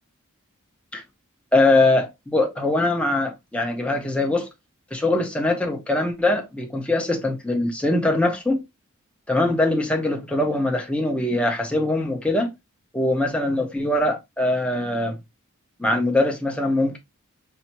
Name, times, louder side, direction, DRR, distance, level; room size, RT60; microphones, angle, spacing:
voice 1, 1.5-4.5 4.9-8.6 9.3-12.5 12.9-15.2 15.8-17.0, left 2 dB, 5° left, 0.9 m, -22 dB
5.5 x 2.8 x 2.9 m
head